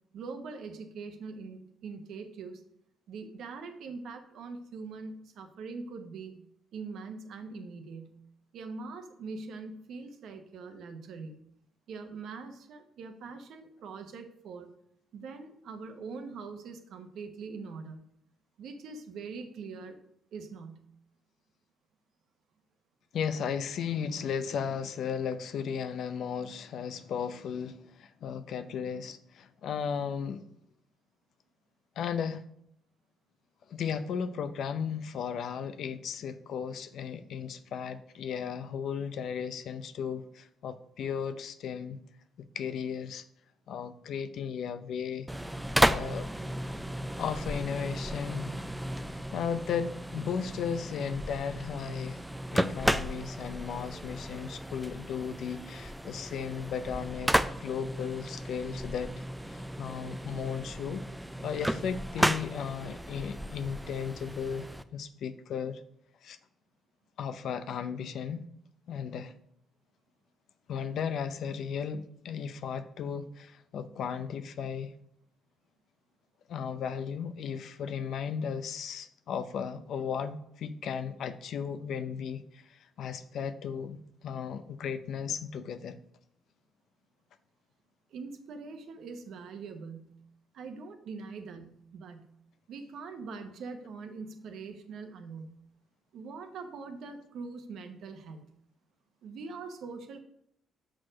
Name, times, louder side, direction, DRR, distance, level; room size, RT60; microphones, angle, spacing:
voice 1, 0.1-2.6 3.1-6.4 6.7-8.2 8.5-11.4 11.9-14.7 15.1-18.1 18.6-20.0 20.3-20.9 88.1-90.2 90.5-92.3 92.7-95.5 96.1-98.4 99.2-100.2, right 4 dB, 75° right, 1.0 m, -43 dB
voice 2, 23.1-30.5 32.0-32.4 33.7-42.0 42.4-43.2 43.7-45.3 45.8-46.3 47.2-48.5 49.1-52.2 52.5-57.3 57.6-59.2 59.5-61.1 61.4-64.6 64.9-65.8 66.2-66.4 67.2-68.5 68.9-69.3 70.7-74.9 76.5-86.0, left 7 dB, 70° left, 0.6 m, -35 dB
sound 1, 45.3-64.8, right 1 dB, 5° right, 0.5 m, -34 dB
6.3 x 4.6 x 6.3 m
supercardioid pair, 70°, 0 cm